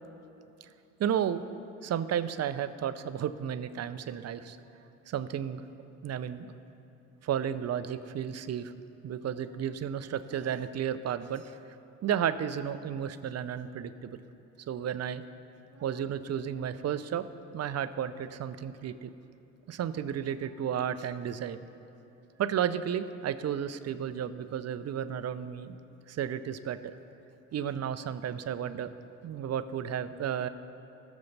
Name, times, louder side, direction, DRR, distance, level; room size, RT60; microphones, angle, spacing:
voice 1, 1.0-1.4 1.8-4.6 5.1-5.6 6.0-6.5 7.2-8.7 9.0-11.4 12.0-14.2 14.7-15.2 15.8-17.2 17.5-19.1 19.7-21.6 22.4-26.9 27.5-28.9 29.2-30.5, right 9 dB, 45° right, 12 dB, 0.7 m, -33 dB
18.5 x 7.2 x 3.4 m, 2.8 s
hypercardioid pair, 65°, 37 cm